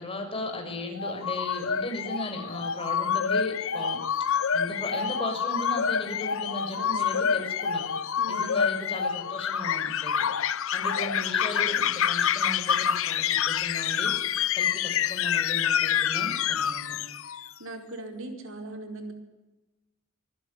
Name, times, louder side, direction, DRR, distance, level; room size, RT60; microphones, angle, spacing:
voice 1, 0.0-4.0 4.5-7.9 8.3-14.8 15.1-17.1, left 1 dB, 25° left, 4 dB, 6.5 m, -36 dB
sound 1, 1.0-17.5, left 8 dB, 65° left, 0.8 m, -27 dB
voice 2, 7.1-7.4 8.2-8.6 17.6-19.1, right 2 dB, 65° right, 5 dB, 4.6 m, -39 dB
24.5 x 23.0 x 9.7 m, 1.1 s
head